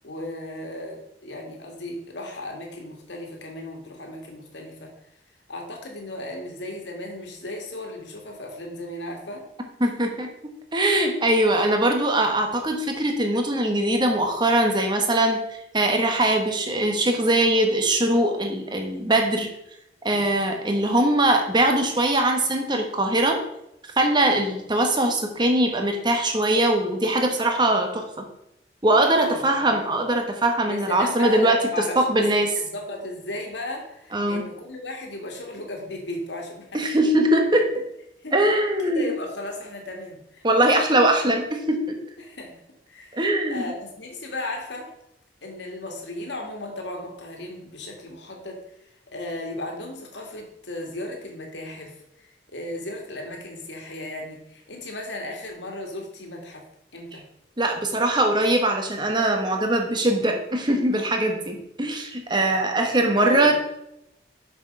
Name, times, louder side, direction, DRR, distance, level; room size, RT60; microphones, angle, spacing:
voice 1, 0.0-4.9 5.5-9.4 29.2-29.7 30.7-32.3 32.6-37.0 38.2-38.4 38.8-40.7 42.2-42.6 42.9-43.2 43.5-44.9 45.4-56.6 56.9-57.2 62.5-62.7 63.1-63.5, left 1 dB, 85° left, 1 dB, 2.1 m, -35 dB
voice 2, 9.8-19.5 20.0-23.4 24.0-28.2 28.8-31.6 31.9-32.5 34.1-34.5 36.7-37.7 38.3-39.1 40.4-42.0 43.1-43.6 57.6-63.6, right 1 dB, 25° right, 3 dB, 1.4 m, -21 dB
7.2 x 6.2 x 5.5 m, 0.82 s
head